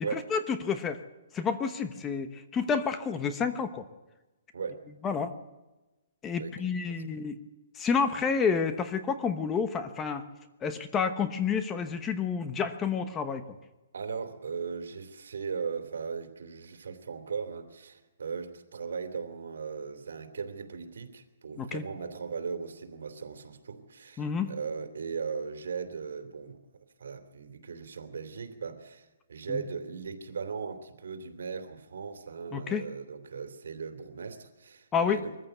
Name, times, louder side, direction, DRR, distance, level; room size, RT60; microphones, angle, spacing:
voice 1, 0.1-1.0 1.3-3.8 5.0-5.3 6.2-7.4 7.7-10.2 10.6-13.4 21.6-21.8 24.2-24.5 29.5-29.6 32.5-32.9 34.9-35.3, left 6 dB, 15° left, 10 dB, 1.0 m, -29 dB
voice 2, 4.5-4.9 6.4-7.3 13.9-26.6 27.0-35.4, right 5 dB, 85° right, 7 dB, 3.0 m, -38 dB
22.5 x 14.5 x 8.1 m, 1.1 s
hypercardioid pair, 165°, 0 cm